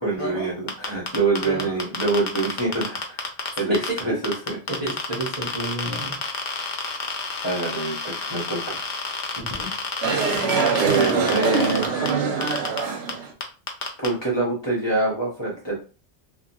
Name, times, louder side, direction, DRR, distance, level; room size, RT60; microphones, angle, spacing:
voice 1, 0.0-3.3 3.6-4.6 7.4-8.9 10.8-11.9 14.0-15.7, right 3 dB, 25° left, -4 dB, 0.8 m, -25 dB
sound 1, 0.7-12.1 12.4-12.8 13.1-13.2 13.4-14.1, left 5 dB, 55° left, 0.6 m, -29 dB
voice 2, 4.7-6.1 9.4-9.7, right 1 dB, 35° right, -6 dB, 0.7 m, -30 dB
sound 2, 10.0-13.3, right 5 dB, 75° right, 0.9 m, -23 dB
2.7 x 2.2 x 2.6 m, 0.35 s
omnidirectional pair, 1.2 m